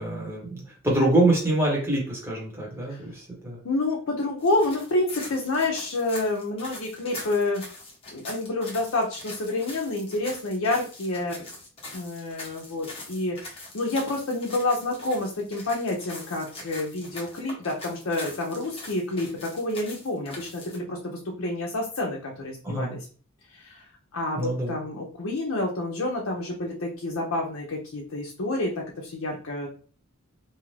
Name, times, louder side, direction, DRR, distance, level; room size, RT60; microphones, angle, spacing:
voice 1, 0.0-3.6 22.6-22.9 24.4-24.8, right 1 dB, 10° right, -3 dB, 1.0 m, -25 dB
voice 2, 3.6-7.6 8.1-11.4 11.9-23.0 23.5-23.9 24.1-29.7, left 2 dB, 70° left, -1 dB, 0.6 m, -28 dB
sound 1, 4.4-20.8, left 2 dB, 25° left, 0.9 m, -43 dB
2.7 x 2.4 x 3.2 m, 0.41 s
head